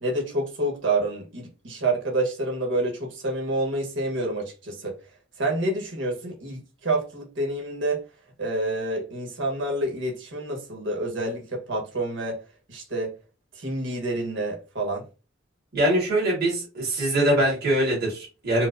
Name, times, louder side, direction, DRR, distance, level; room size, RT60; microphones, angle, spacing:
voice 1, 0.0-5.0 5.4-8.0 8.4-12.4 12.7-13.2 13.5-15.1, right 2 dB, 90° right, 1.2 m, -28 dB
voice 2, 15.7-18.7, right 1 dB, 55° right, 1.9 m, -23 dB
4.6 x 2.0 x 2.5 m
head